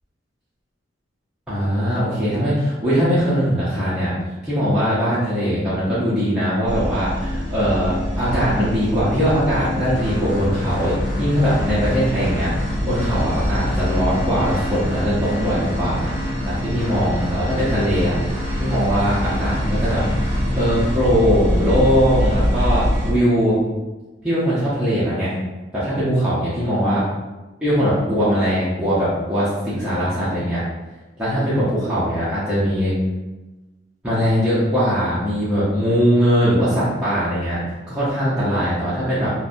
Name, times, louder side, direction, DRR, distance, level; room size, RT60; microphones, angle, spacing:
voice 1, 1.5-4.1 4.4-16.1 16.5-18.1 18.6-20.0 20.5-23.6 24.2-25.4 25.7-27.0 27.6-30.6 31.2-32.9 34.0-39.3, equal, 5° right, -12 dB, 0.5 m, -20 dB
sound 1, 6.6-23.1, equal, 60° right, 0.6 m, -25 dB
sound 2, 9.9-20.9, left 1 dB, 85° left, 0.8 m, -30 dB
2.6 x 2.2 x 2.5 m, 1.1 s
head